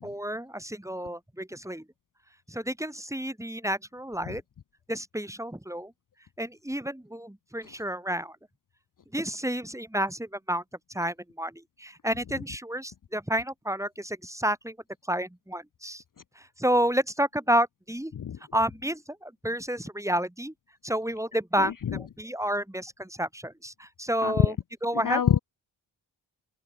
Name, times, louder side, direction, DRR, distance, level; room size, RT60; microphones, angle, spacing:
voice 1, 0.0-1.8 2.5-4.4 4.9-5.9 6.4-8.4 9.1-10.6 10.9-14.8 15.1-16.0 16.4-18.1 18.5-20.5 20.8-24.5 24.8-25.2, right 1 dB, 5° right, 2.6 m, -30 dB
voice 2, 21.6-22.0 24.2-24.6 24.9-25.4, left 8 dB, 40° left, 0.7 m, -26 dB
open air
cardioid pair, 60°, 48 cm